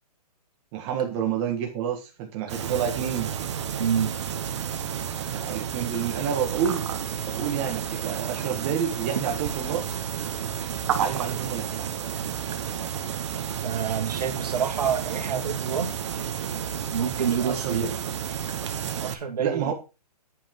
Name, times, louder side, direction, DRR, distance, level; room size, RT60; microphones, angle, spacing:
voice 1, 0.7-3.3 5.3-6.8 7.2-9.9 10.9-11.9 17.4-17.9 19.4-19.7, right 8 dB, 20° right, 1 dB, 1.6 m, -29 dB
sound 1, 2.5-19.1, right 8 dB, 45° right, 1.3 m, -31 dB
voice 2, 3.8-4.1 13.6-15.9 16.9-17.9 19.0-19.7, right 7 dB, 70° right, 4 dB, 2.6 m, -27 dB
10.0 x 8.8 x 3.7 m, 0.29 s
hypercardioid pair, 170°, 21 cm